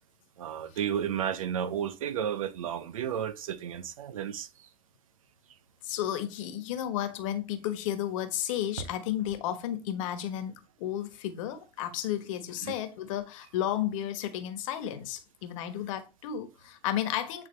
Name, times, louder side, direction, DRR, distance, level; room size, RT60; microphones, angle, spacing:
voice 1, 0.4-4.5 12.6-12.7, right 9 dB, 85° right, 0.7 m, -32 dB
voice 2, 5.8-17.5, left 11 dB, 70° left, 1.3 m, -33 dB
9.0 x 3.7 x 3.2 m
hypercardioid pair, 85°, 17 cm